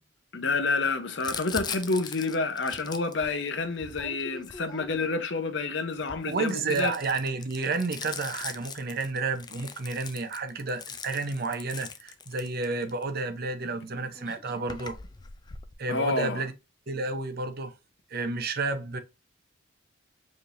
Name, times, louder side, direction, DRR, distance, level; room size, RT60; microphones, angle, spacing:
voice 1, 0.3-6.9 15.9-16.4, left 3 dB, 60° left, 0.8 m, -29 dB
Crumpling crinkling, 1.2-5.2 5.9-13.0 13.9-14.0 14.1-15.7, left 5 dB, 20° left, 0.4 m, -41 dB
voice 2, 6.3-15.0 15.8-16.5 16.9-17.7 18.1-19.0, right 3 dB, 50° right, 0.7 m, -31 dB
5.0 x 3.2 x 2.5 m
head